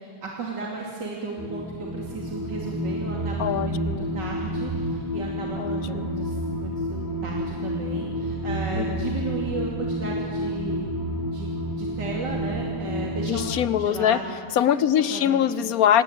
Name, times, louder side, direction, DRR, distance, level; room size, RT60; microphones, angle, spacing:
voice 1, 0.0-10.9 11.2-13.5 13.7-14.4 15.1-15.4, right 3 dB, 60° right, -3 dB, 3.4 m, -35 dB
sound 1, 1.4-13.5, equal, 10° right, 4.8 m, -29 dB
voice 2, 3.4-4.1 5.6-6.1 8.8-9.1 13.2-14.2 14.5-16.0, left 10 dB, 60° left, 15 dB, 1.1 m, -23 dB
27.0 x 20.0 x 9.0 m, 2.2 s
omnidirectional pair, 2.1 m